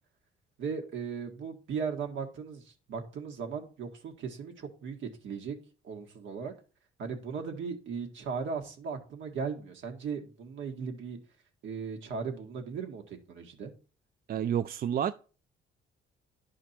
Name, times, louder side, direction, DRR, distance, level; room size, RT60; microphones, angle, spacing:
voice 1, 0.6-5.6 5.8-6.5 7.0-11.2 11.6-13.7, right 5 dB, 75° right, 1.8 m, -37 dB
voice 2, 14.3-15.1, right 9 dB, 50° right, 0.4 m, -29 dB
11.0 x 4.9 x 4.4 m
cardioid pair, 90°, 20 cm